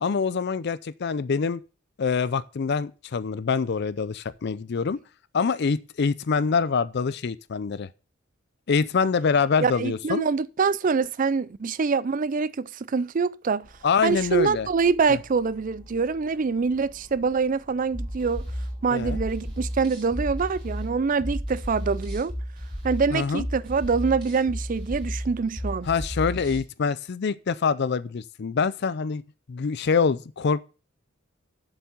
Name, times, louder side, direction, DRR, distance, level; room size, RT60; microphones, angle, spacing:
voice 1, 0.0-1.6 2.0-5.0 5.3-7.9 8.7-10.2 13.8-14.7 15.1-15.2 18.9-19.2 23.1-23.4 25.9-29.2 29.5-30.6, left 5 dB, 50° left, 0.4 m, -25 dB
voice 2, 9.6-13.7 14.0-18.5 18.8-22.3 22.8-25.9, right 5 dB, 40° right, 0.4 m, -25 dB
sound 1, 13.6-21.3, left 1 dB, 30° left, 1.7 m, -52 dB
sound 2, 17.9-26.7, equal, 20° right, 3.7 m, -33 dB
7.4 x 7.0 x 7.0 m
head